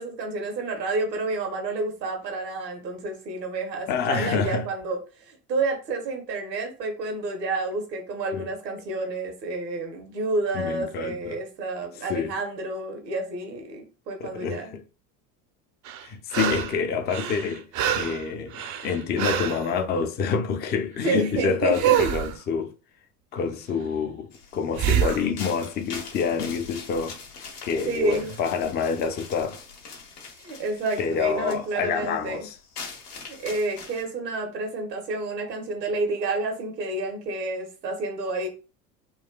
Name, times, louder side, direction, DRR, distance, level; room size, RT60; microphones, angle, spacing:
voice 1, 0.0-14.8 21.0-22.0 27.8-28.4 30.4-32.5 33.3-38.5, right 3 dB, 90° right, 1.0 m, -29 dB
voice 2, 3.9-4.7 10.5-11.4 12.1-12.3 14.2-14.8 16.0-17.7 18.0-18.6 18.8-22.7 23.3-27.2 27.6-29.6 31.0-32.6, left 6 dB, 25° left, 0.4 m, -27 dB
sound 1, 15.8-16.8 17.1-19.7 21.7-22.4 24.7-25.3 28.2-28.3, right 10 dB, 40° right, 0.4 m, -25 dB
sound 2, 24.3-34.0, left 5 dB, 70° left, 1.2 m, -43 dB
3.9 x 2.2 x 2.2 m
hypercardioid pair, 75°, 48 cm